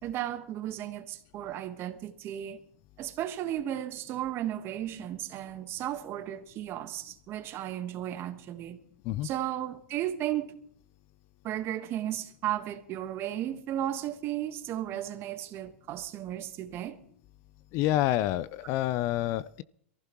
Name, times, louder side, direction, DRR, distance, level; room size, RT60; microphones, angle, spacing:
voice 1, 0.0-2.6 3.0-8.8 9.2-10.5 11.4-16.9, right 12 dB, 35° right, 1.4 m, -34 dB
voice 2, 17.7-19.6, left 14 dB, 45° left, 0.5 m, -28 dB
23.0 x 15.0 x 3.0 m
hypercardioid pair, 120°, 7 cm